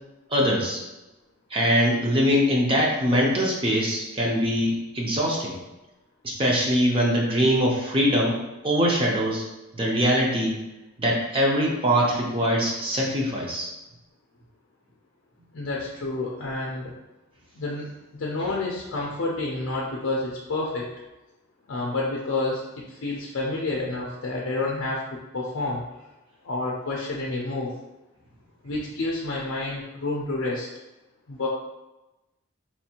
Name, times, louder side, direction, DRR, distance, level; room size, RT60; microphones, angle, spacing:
voice 1, 0.3-0.8 1.5-5.6 6.2-8.4 8.6-9.4 9.7-10.6 11.0-13.7, equal, 25° right, -2 dB, 0.5 m, -22 dB
voice 2, 15.5-16.9 17.6-17.9 18.1-20.9 21.7-25.0 25.3-25.8 26.4-27.7 28.6-30.7 31.3-31.5, left 2 dB, 60° left, -3 dB, 0.5 m, -29 dB
4.3 x 2.5 x 2.8 m, 1.0 s
head